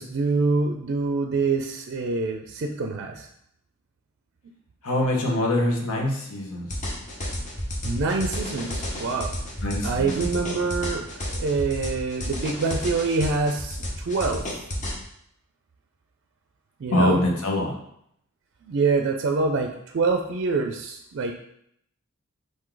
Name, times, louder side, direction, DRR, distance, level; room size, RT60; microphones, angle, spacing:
voice 1, 0.0-3.3 7.8-9.3 9.8-11.0 11.3-14.4 16.8-17.2 18.6-21.3, right 4 dB, 55° right, 3 dB, 0.4 m, -25 dB
voice 2, 4.8-6.7 9.6-10.3 16.9-17.7, left 1 dB, 90° left, 0 dB, 1.0 m, -24 dB
sound 1, 6.7-15.0, left 1 dB, 35° left, 0.8 m, -31 dB
4.6 x 2.6 x 3.8 m, 0.73 s
head